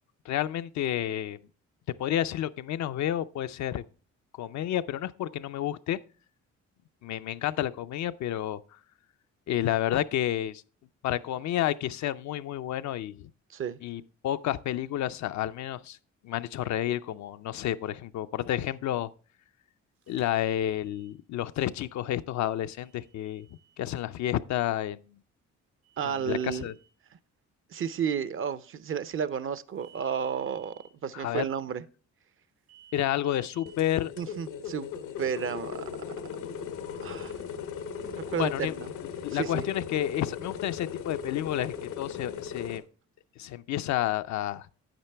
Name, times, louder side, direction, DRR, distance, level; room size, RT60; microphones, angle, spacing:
voice 1, 0.3-1.4 2.0-3.8 4.3-6.0 7.0-8.6 9.5-10.6 11.0-13.3 13.8-16.0 16.2-19.1 20.1-23.5 23.8-25.1 26.0-26.7 31.1-31.5 32.9-34.1 38.4-38.7 39.2-42.8 43.4-44.7, left 12 dB, 65° left, 0.5 m, -30 dB
sound 1, 20.0-21.1 22.7-23.8 25.8-26.9 29.8-30.9 32.7-33.8, right 9 dB, 90° right, 2.6 m, -58 dB
voice 2, 26.0-26.7 27.7-30.7 31.0-31.8 34.2-34.9 35.2-35.9 37.0-37.3 38.0-38.9 39.3-39.6, right 7 dB, 45° right, 0.6 m, -32 dB
sound 2, 33.7-42.8, left 7 dB, 90° left, 1.1 m, -38 dB
8.9 x 8.9 x 3.3 m
cardioid pair, 90°, 30 cm